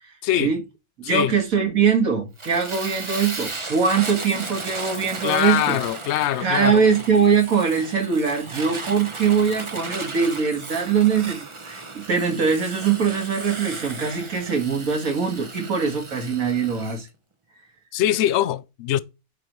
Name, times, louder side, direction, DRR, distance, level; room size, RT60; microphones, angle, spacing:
voice 1, 1.0-5.8 6.4-17.1, right 6 dB, 65° right, 2.3 m, -22 dB
Fire, 2.4-17.0, right 3 dB, 25° right, 0.8 m, -35 dB
voice 2, 5.2-6.8 17.9-19.0, left 12 dB, 70° left, 0.6 m, -22 dB
11.0 x 5.3 x 3.1 m
omnidirectional pair, 1.6 m